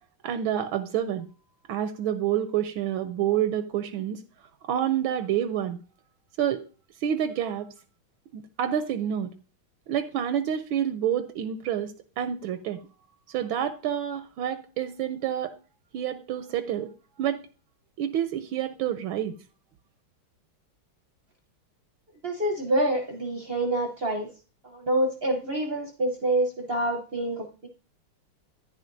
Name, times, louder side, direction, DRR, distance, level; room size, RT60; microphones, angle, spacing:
voice 1, 0.2-1.3 1.7-4.2 4.6-5.8 6.4-6.6 7.0-7.7 8.3-9.3 9.9-12.8 13.3-15.6 15.9-16.9 17.2-17.4 18.0-19.4, right 10 dB, 80° right, 10 dB, 1.4 m, -28 dB
voice 2, 22.2-24.3 24.7-27.7, right 1 dB, 50° right, 2 dB, 0.7 m, -27 dB
10.5 x 9.7 x 2.6 m, 0.35 s
omnidirectional pair, 2.3 m